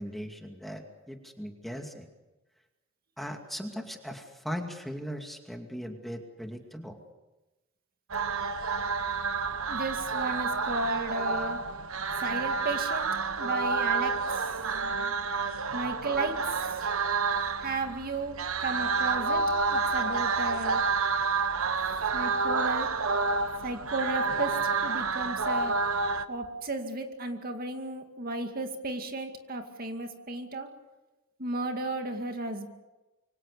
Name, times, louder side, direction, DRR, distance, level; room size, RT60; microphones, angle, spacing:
voice 1, 0.0-2.1 3.2-7.0, equal, ahead, 3 dB, 2.3 m, -39 dB
sound 1, 8.1-26.2, right 4 dB, 75° right, 1.3 m, -29 dB
voice 2, 9.7-11.6 12.2-13.1 13.4-14.5 15.7-16.8 17.6-19.4 19.7-20.8 22.1-22.9 23.6-24.6 24.8-25.7 26.3-30.7 31.4-32.7, right 2 dB, 45° right, 5 dB, 2.3 m, -34 dB
26.5 x 24.5 x 6.8 m, 1.1 s
head